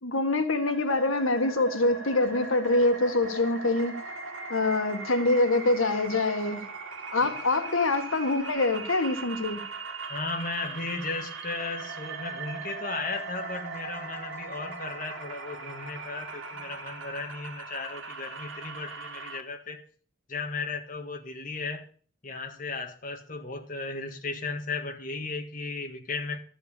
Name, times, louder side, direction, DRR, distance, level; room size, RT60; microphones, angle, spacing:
voice 1, 0.0-4.0 4.5-6.7 7.1-9.7, left 2 dB, 80° left, 1.8 m, -25 dB
sound 1, 0.7-19.4, right 4 dB, 75° right, 2.5 m, -39 dB
voice 2, 10.1-19.8 20.3-21.9 22.2-26.4, left 3 dB, 40° left, 1.7 m, -35 dB
13.5 x 8.2 x 6.9 m
head